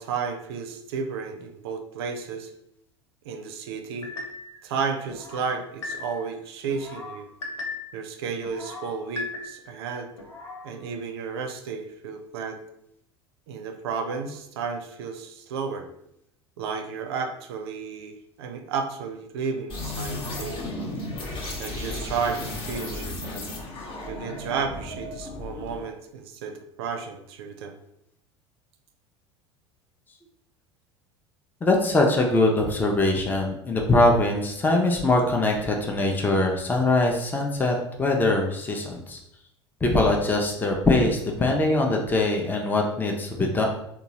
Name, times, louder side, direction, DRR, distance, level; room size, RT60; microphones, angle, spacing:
voice 1, 0.0-2.5 3.2-4.1 4.6-7.3 7.9-10.1 10.6-12.6 13.5-15.9 16.6-20.6 21.6-23.2 24.1-27.8, right 5 dB, 65° right, 5 dB, 0.4 m, -32 dB
sound 1, 4.0-4.6 5.1-6.3 6.7-8.0 8.4-9.8 10.2-10.7, left 3 dB, 85° left, 0.7 m, -37 dB
sound 2, 19.7-25.9, left 2 dB, 40° left, 0.9 m, -34 dB
voice 2, 31.6-39.2 39.8-43.6, left 2 dB, 15° left, 1 dB, 0.5 m, -22 dB
3.7 x 2.3 x 2.8 m, 0.78 s
figure-of-eight pair, 75°, 14 cm